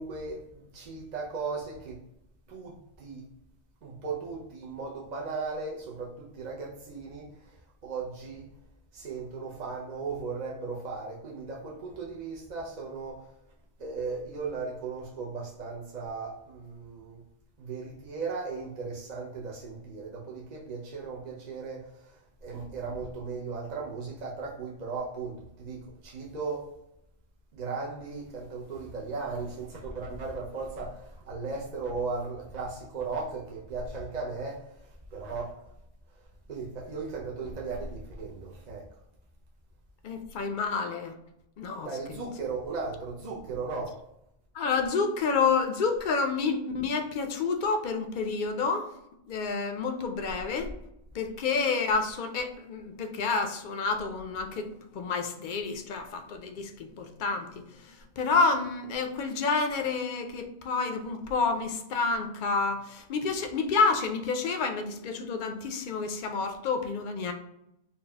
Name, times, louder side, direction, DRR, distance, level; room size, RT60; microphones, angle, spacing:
voice 1, 0.0-2.0 2.5-3.3 3.8-8.5 8.9-13.2 13.8-17.2 17.6-26.7 27.5-35.6 36.5-38.9 41.8-44.0, right 4 dB, 50° right, -3 dB, 0.6 m, -37 dB
voice 2, 40.0-41.1 41.6-42.2 44.5-48.9 49.3-50.7 51.1-54.7 54.9-57.6 58.2-67.3, left 4 dB, 60° left, 6 dB, 0.6 m, -29 dB
4.2 x 2.2 x 3.3 m, 0.83 s
omnidirectional pair, 1.2 m